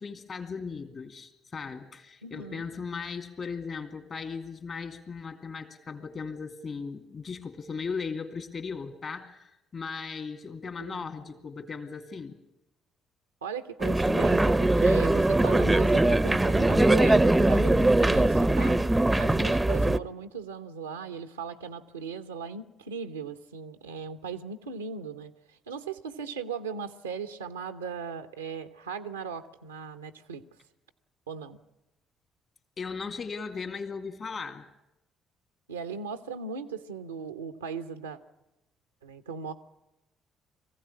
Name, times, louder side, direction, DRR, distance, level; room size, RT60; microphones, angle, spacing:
voice 1, 0.0-12.4 32.8-34.7, left 5 dB, 45° left, 7 dB, 2.6 m, -37 dB
voice 2, 2.2-2.6 10.6-11.1 13.4-18.8 19.2-30.4 31.3-31.6 35.7-38.2 39.0-39.5, right 6 dB, 90° right, 8 dB, 0.8 m, -38 dB
sound 1, 13.8-20.0, right 2 dB, 15° right, 0.7 m, -21 dB
23.0 x 15.5 x 9.7 m, 0.93 s
hypercardioid pair, 50°, 0 cm